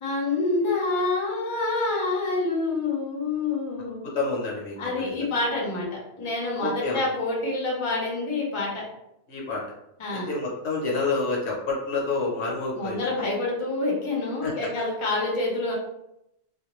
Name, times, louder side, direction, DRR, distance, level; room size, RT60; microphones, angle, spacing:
voice 1, 0.0-4.0 4.8-8.8 10.0-10.3 12.8-15.7, left 3 dB, 30° left, -3 dB, 0.6 m, -27 dB
voice 2, 4.0-5.3 6.6-7.0 9.3-9.6 10.1-13.0 14.4-14.5, left 3 dB, 70° left, -3 dB, 1.0 m, -28 dB
2.4 x 2.2 x 3.0 m, 0.84 s
omnidirectional pair, 1.2 m